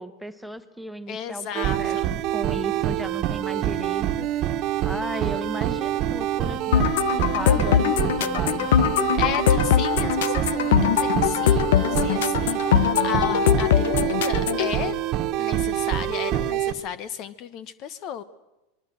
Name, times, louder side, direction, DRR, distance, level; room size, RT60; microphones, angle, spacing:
voice 1, 0.0-2.0 2.3-4.3 4.8-8.7, right 1 dB, ahead, 12 dB, 1.5 m, -35 dB
voice 2, 1.1-2.1 9.2-15.0 15.4-18.2, left 8 dB, 45° left, 16 dB, 1.0 m, -34 dB
sound 1, 1.5-16.7, right 12 dB, 45° right, 1.5 m, -26 dB
sound 2, 6.7-14.7, left 10 dB, 80° left, 0.8 m, -22 dB
24.5 x 22.0 x 7.8 m, 0.99 s
supercardioid pair, 125°, 0 cm